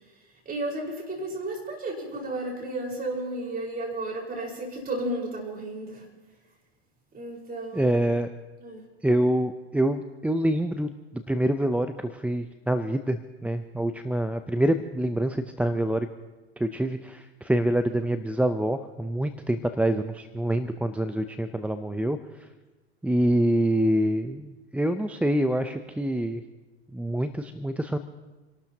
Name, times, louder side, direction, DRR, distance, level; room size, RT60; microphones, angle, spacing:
voice 1, 0.5-6.1 7.1-8.0 8.6-8.8, right 2 dB, 25° right, -1 dB, 5.1 m, -33 dB
voice 2, 7.7-8.3 9.0-16.1 16.6-22.5 23.0-26.4 26.9-28.0, right 1 dB, 5° right, 9 dB, 0.7 m, -26 dB
28.5 x 12.5 x 3.0 m, 1.2 s
hypercardioid pair, 85°, 32 cm